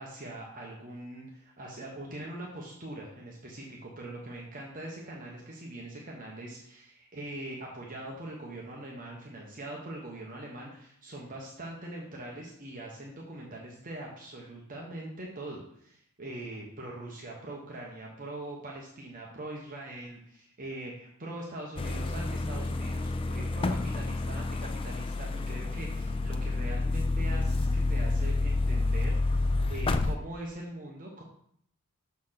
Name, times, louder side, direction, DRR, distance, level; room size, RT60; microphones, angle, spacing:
voice 1, 0.0-31.2, right 1 dB, 40° right, -2 dB, 1.0 m, -42 dB
sound 1, 21.8-30.2, left 2 dB, 25° left, 0.3 m, -29 dB
6.5 x 4.2 x 5.7 m, 0.67 s
head